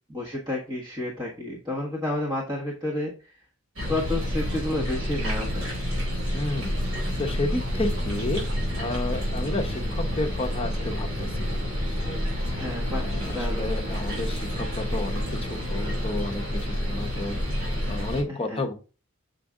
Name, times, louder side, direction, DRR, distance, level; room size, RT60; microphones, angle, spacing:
voice 1, 0.1-3.3 3.9-5.7 12.5-13.7 18.3-18.6, left 1 dB, 20° right, -3 dB, 1.4 m, -31 dB
sound 1, 3.8-18.2, equal, 65° right, 4.2 m, -29 dB
voice 2, 6.3-8.4 8.7-12.2 12.9-18.7, left 2 dB, 25° left, 3 dB, 0.9 m, -32 dB
7.2 x 5.0 x 3.7 m, 0.34 s
head